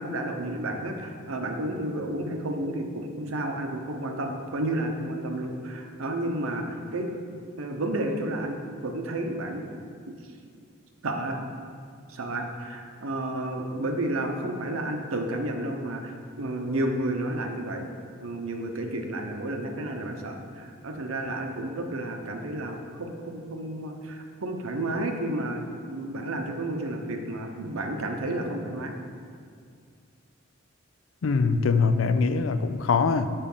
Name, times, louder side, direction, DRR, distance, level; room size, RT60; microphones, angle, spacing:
voice 1, 0.0-7.1 7.6-9.7 10.1-10.2 11.0-11.4 12.1-17.8 18.2-28.9, right 1 dB, 90° right, 3 dB, 0.8 m, -31 dB
voice 2, 31.2-33.3, left 4 dB, 70° left, 10 dB, 0.4 m, -23 dB
6.8 x 5.2 x 5.4 m, 2.2 s
head